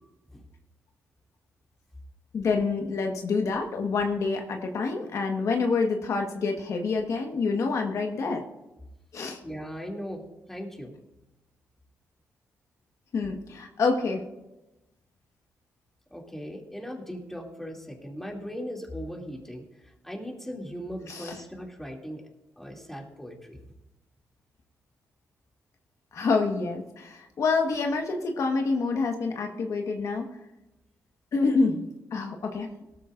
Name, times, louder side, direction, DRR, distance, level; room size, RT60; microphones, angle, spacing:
voice 1, 2.3-8.4 9.1-9.4 13.1-14.2 21.1-21.4 26.1-30.3 31.3-31.8 32.1-32.7, left 4 dB, 60° left, 2 dB, 1.5 m, -27 dB
voice 2, 9.4-10.9 16.1-22.2 22.6-23.6, equal, 5° left, -1 dB, 2.7 m, -38 dB
17.5 x 13.0 x 2.6 m, 0.96 s
cardioid pair, 90°, 6 cm